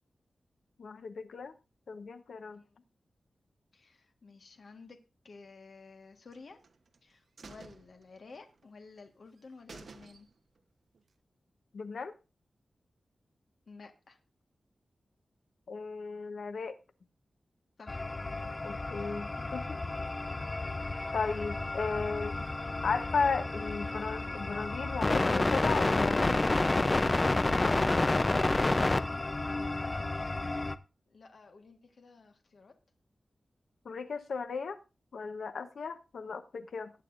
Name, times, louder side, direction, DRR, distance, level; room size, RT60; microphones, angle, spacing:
voice 1, 0.8-1.5 1.9-2.6 11.7-12.1 15.7-16.8 18.6-19.8 21.1-22.4 22.8-26.4 27.4-27.8 33.8-34.8 35.1-36.9, left 5 dB, 85° left, 9 dB, 1.0 m, -35 dB
voice 2, 2.5-2.8 3.7-6.6 7.0-10.3 13.7-14.2 17.8-18.0 18.9-19.2 28.2-30.5 31.1-32.8, left 4 dB, 60° left, 5 dB, 1.4 m, -54 dB
sound 1, 6.3-7.0 7.4-8.7 9.0-9.1 9.4-9.5 9.7-10.6 10.9-11.0, right 4 dB, 65° right, 0.9 m, -52 dB
sound 2, 17.9-30.8, left 2 dB, 25° left, 0.6 m, -30 dB
19.0 x 8.5 x 2.6 m, 0.30 s
wide cardioid pair, 150°, 0 cm